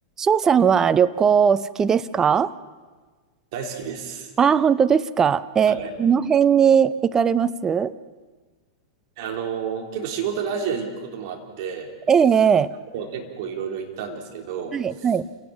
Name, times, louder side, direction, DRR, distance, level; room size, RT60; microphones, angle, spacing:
voice 1, 0.2-2.5 4.4-7.9 12.1-12.7 14.7-15.2, right 7 dB, 20° right, 14 dB, 0.7 m, -19 dB
voice 2, 3.5-4.3 5.7-5.9 9.2-11.9 12.9-15.1, right 7 dB, 50° right, 2 dB, 3.5 m, -30 dB
28.5 x 17.5 x 5.9 m, 1.4 s
figure-of-eight pair, 95°, 2 cm